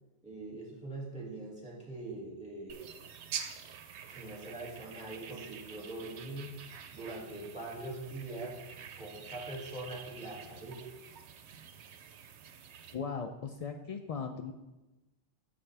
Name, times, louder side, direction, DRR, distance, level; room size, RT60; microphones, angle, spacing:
voice 1, 0.2-3.0 4.1-8.6 9.0-10.8, right 2 dB, 5° right, -5 dB, 2.2 m, -43 dB
sound 1, 2.7-13.0, right 7 dB, 75° right, 0.9 m, -47 dB
voice 2, 12.9-14.5, left 5 dB, 70° left, 5 dB, 0.3 m, -38 dB
8.7 x 6.9 x 3.4 m, 1.0 s
omnidirectional pair, 1.2 m